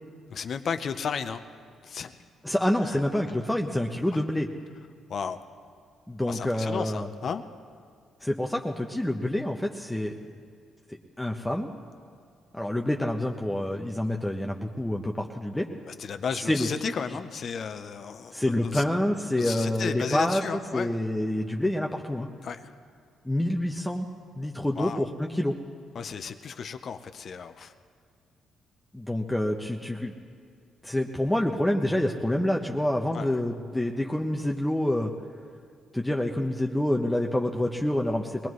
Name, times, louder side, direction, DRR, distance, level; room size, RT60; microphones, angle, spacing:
voice 1, 0.3-1.4 1.8-2.1 2.8-3.0 5.1-5.4 6.3-7.4 15.9-18.8 19.3-20.9 22.4-22.7 24.7-25.1 25.9-27.7 33.1-33.3, left 6 dB, 55° left, 8 dB, 0.6 m, -34 dB
voice 2, 2.4-4.5 6.1-7.1 8.2-10.1 11.2-11.7 12.5-15.7 16.5-16.7 18.3-20.4 20.7-22.3 23.2-24.1 24.4-25.6 28.9-30.1 30.8-35.1 35.9-38.5, left 1 dB, 5° left, 0 dB, 0.9 m, -27 dB
23.0 x 19.0 x 3.2 m, 2.3 s
cardioid pair, 90°, 0 cm